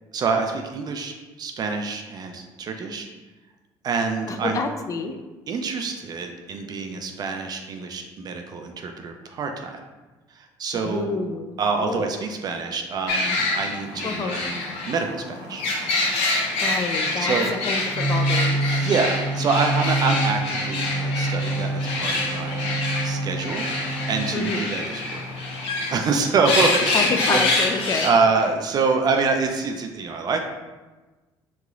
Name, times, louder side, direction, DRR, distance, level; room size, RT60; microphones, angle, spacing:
voice 1, 0.1-3.1 3.8-4.6 5.5-9.8 10.3-11.2 11.6-14.6 14.9-15.6 17.2-17.5 18.7-22.7 23.0-23.6 24.1-25.3 25.9-27.4 27.7-30.4, right 4 dB, 45° right, 4 dB, 0.3 m, -26 dB
voice 2, 4.3-5.2 10.7-12.1 14.0-14.4 16.6-18.6 24.3-24.7 26.9-28.1, left 4 dB, 35° left, 6 dB, 0.3 m, -28 dB
sound 1, 13.1-28.5, left 2 dB, 85° left, 0.6 m, -26 dB
sound 2, 17.9-24.3, right 2 dB, 85° right, 0.8 m, -27 dB
3.0 x 2.8 x 2.4 m, 1.2 s
cardioid pair, 100°, 10 cm